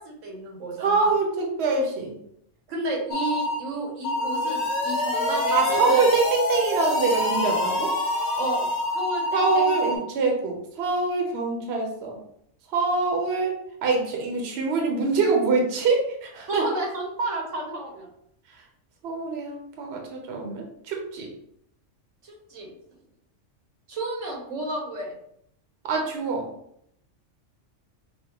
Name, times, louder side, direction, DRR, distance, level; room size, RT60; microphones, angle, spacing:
voice 1, 0.0-1.1 2.7-6.1 8.4-9.9 16.5-18.1 22.2-22.7 23.9-25.1, right 2 dB, 85° right, 1 dB, 1.3 m, -32 dB
voice 2, 0.8-2.1 5.5-7.9 9.3-12.2 12.7-13.5 13.8-16.7 19.0-21.3 25.9-26.5, right 4 dB, 60° right, 1 dB, 0.9 m, -24 dB
sound 1, 3.1-3.6 4.0-6.3 6.8-10.0, left 1 dB, 70° left, 1.1 m, -27 dB
sound 2, 4.2-9.0, left 2 dB, 40° left, 0.7 m, -29 dB
5.6 x 2.2 x 2.9 m, 0.72 s
omnidirectional pair, 1.3 m